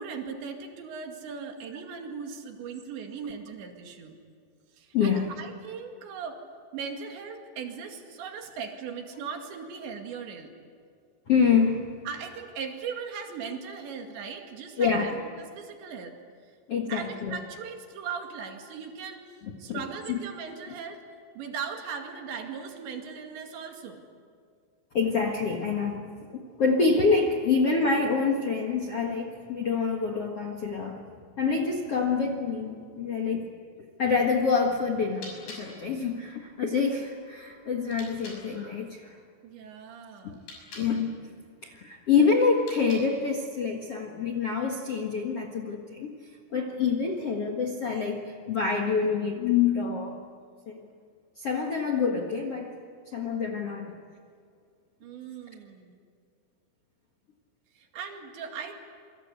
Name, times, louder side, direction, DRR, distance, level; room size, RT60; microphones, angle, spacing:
voice 1, 0.0-4.2 4.7-6.5 6.7-10.5 12.1-16.2 16.4-16.5 16.9-19.2 19.6-21.0 21.4-24.0 39.4-40.5 55.0-56.0 57.7-58.7, right 6 dB, 75° right, 4 dB, 4.5 m, -38 dB
voice 2, 4.9-5.3 11.3-11.9 14.8-15.2 16.7-17.4 19.7-19.8 20.1-20.2 24.9-26.1 26.3-31.0 31.4-33.5 34.0-39.2 40.2-40.3 40.7-41.2 41.6-46.2 46.5-50.2 50.7-50.8 51.4-52.7 53.1-53.9, left 5 dB, 60° left, 3 dB, 1.6 m, -26 dB
sound 1, 35.1-38.5 40.3-41.0 42.5-43.3, left 3 dB, 80° left, 8.5 m, -48 dB
27.5 x 24.0 x 8.3 m, 2.2 s
omnidirectional pair, 5.2 m